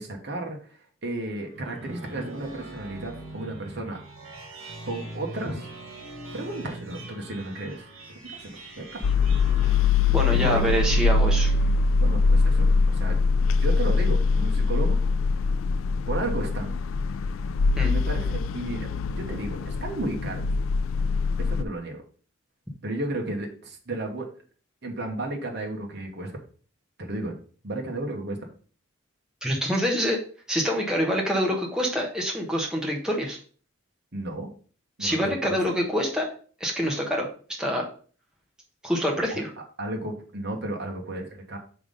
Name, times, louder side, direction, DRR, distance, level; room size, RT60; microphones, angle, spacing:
voice 1, 0.0-4.0 4.9-5.7 6.3-7.9 8.2-8.9 10.1-10.7 12.0-13.1 13.6-15.0 16.1-16.7 17.8-20.4 21.4-22.0 22.8-24.3 24.8-26.3 27.0-27.3 27.6-28.4 34.1-34.5 35.0-35.6 39.3-39.4 39.8-41.6, right 2 dB, 55° right, 1 dB, 1.1 m, -33 dB
sound 1, 1.3-12.1, right 2 dB, 80° right, 1.6 m, -42 dB
sound 2, 9.0-21.6, left 4 dB, 75° left, 0.4 m, -23 dB
voice 2, 10.1-11.5 17.8-17.9 29.4-30.2 30.5-33.4 35.0-36.3 36.6-37.3 37.6-37.9 38.8-39.5, equal, 5° right, -1 dB, 1.2 m, -26 dB
5.8 x 3.7 x 5.2 m, 0.42 s
head